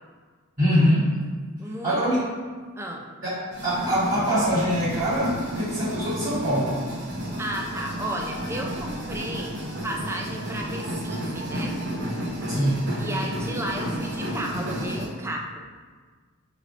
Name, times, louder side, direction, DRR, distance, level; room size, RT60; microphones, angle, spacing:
voice 1, 0.6-1.1 1.8-2.3 3.2-6.8 12.5-12.9, equal, 35° right, -13 dB, 1.2 m, -23 dB
voice 2, 1.6-2.2 2.8-3.1 7.4-11.8 13.0-15.6, right 1 dB, 10° right, 0 dB, 0.4 m, -33 dB
sound 1, 3.5-15.1, equal, 55° right, 1.0 m, -32 dB
6.3 x 3.2 x 2.5 m, 1.5 s
head